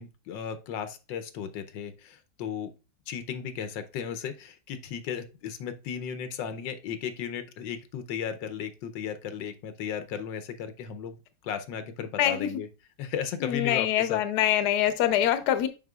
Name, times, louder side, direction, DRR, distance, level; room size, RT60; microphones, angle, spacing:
voice 1, 0.0-2.7 3.1-12.7 13.0-14.2, left 8 dB, 85° left, 9 dB, 1.4 m, -35 dB
voice 2, 12.2-12.5 13.4-15.7, left 11 dB, 70° left, 11 dB, 1.2 m, -24 dB
7.4 x 5.5 x 2.3 m, 0.30 s
omnidirectional pair, 1.9 m